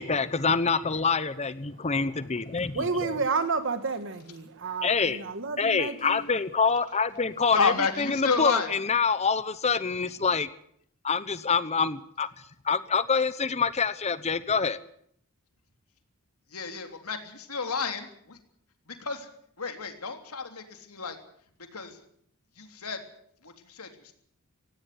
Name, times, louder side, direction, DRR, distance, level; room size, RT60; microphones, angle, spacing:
voice 1, 0.0-3.2 4.8-5.2 5.6-10.5 11.0-12.3 12.6-14.8, left 5 dB, 30° left, 0.9 m, -26 dB
voice 2, 2.7-6.2, right 4 dB, 60° right, 1.7 m, -30 dB
voice 3, 7.5-8.7 16.5-18.4 19.0-19.3 19.6-20.6 20.9-21.2 21.7-21.9 22.6-23.0 23.8-24.1, left 5 dB, 90° left, 3.4 m, -30 dB
17.0 x 17.0 x 9.5 m
head